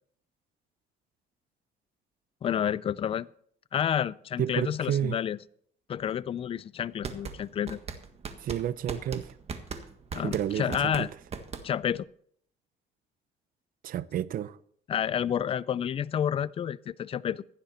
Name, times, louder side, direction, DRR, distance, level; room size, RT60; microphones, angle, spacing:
voice 1, 2.4-3.3 3.7-5.4 5.9-7.8 10.1-11.1 11.6-12.1 14.9-17.4, left 9 dB, 35° left, 0.4 m, -29 dB
voice 2, 4.4-5.2 8.4-9.3 10.2-10.9 13.8-14.6, right 10 dB, 55° right, 0.6 m, -30 dB
sound 1, 6.8-12.0, right 5 dB, 35° right, 1.6 m, -38 dB
15.5 x 10.5 x 4.4 m
cardioid pair, 110°, 17 cm